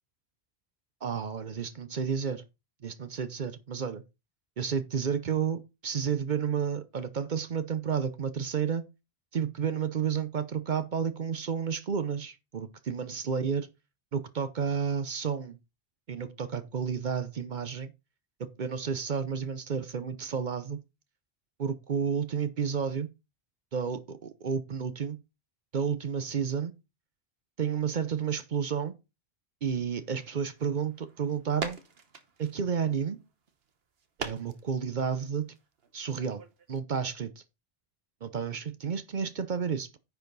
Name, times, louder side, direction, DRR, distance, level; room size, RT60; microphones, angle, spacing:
voice 1, 1.0-2.4 2.8-4.0 4.6-8.8 9.3-13.7 14.1-15.6 16.1-17.9 18.6-20.8 21.6-23.1 23.7-25.2 25.7-26.7 27.6-28.9 29.6-31.8 32.4-33.2 34.2-35.4 35.9-36.4 36.7-37.3 38.2-40.0, right 7 dB, 55° right, 0.8 m, -31 dB
sound 1, 30.1-36.8, right 5 dB, 70° right, 1.3 m, -44 dB
9.9 x 4.6 x 3.9 m
omnidirectional pair, 1.0 m